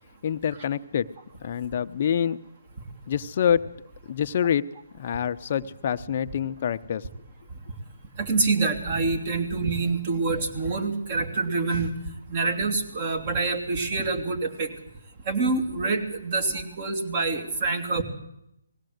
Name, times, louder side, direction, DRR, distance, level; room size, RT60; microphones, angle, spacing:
voice 1, 0.2-1.1 1.4-2.4 3.1-3.6 4.1-4.6 5.0-7.1, left 8 dB, 40° left, 10 dB, 0.7 m, -26 dB
voice 2, 8.2-11.9 12.3-14.7 15.3-18.0, right 3 dB, 35° right, 5 dB, 2.9 m, -26 dB
20.0 x 17.0 x 7.9 m, 0.80 s
hypercardioid pair, 155°, 0 cm